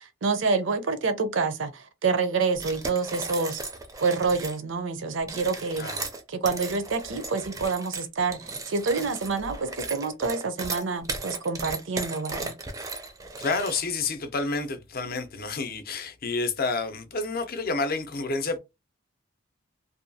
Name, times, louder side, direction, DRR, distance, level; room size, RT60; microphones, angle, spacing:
voice 1, 0.0-3.6 4.0-5.9 6.3-12.5, right 4 dB, 70° right, 0.5 m, -27 dB
sound 1, 2.6-4.6 5.2-14.1, right 3 dB, 15° right, 0.4 m, -36 dB
voice 2, 5.8-6.1 13.4-18.6, left 3 dB, 50° left, 0.5 m, -29 dB
2.7 x 2.2 x 2.6 m
head